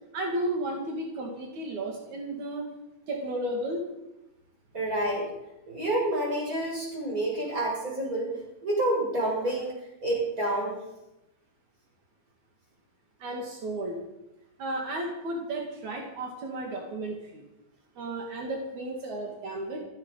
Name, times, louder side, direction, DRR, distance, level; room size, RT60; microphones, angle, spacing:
voice 1, 0.1-2.7 3.1-3.9 13.2-14.0 14.6-17.4 18.0-19.8, right 1 dB, 80° right, 0 dB, 3.8 m, -33 dB
voice 2, 4.7-5.3 5.7-8.3 8.6-9.7 10.0-10.8, right 1 dB, 25° right, -3 dB, 7.4 m, -28 dB
15.5 x 15.0 x 5.6 m, 0.93 s
omnidirectional pair, 3.3 m